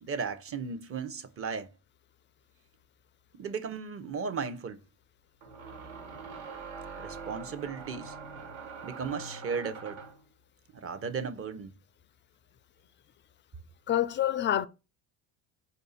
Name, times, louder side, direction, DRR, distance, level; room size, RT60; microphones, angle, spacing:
voice 1, 0.0-1.7 3.3-4.8 6.9-8.1 8.8-10.0 10.7-11.7, right 5 dB, 35° right, 0.8 m, -35 dB
sound 1, 3.4-3.5 5.4-10.2, right 5 dB, 75° right, 1.5 m, -43 dB
voice 2, 13.9-14.7, left 11 dB, 30° left, 0.4 m, -26 dB
4.9 x 2.6 x 4.0 m
supercardioid pair, 85°, 41 cm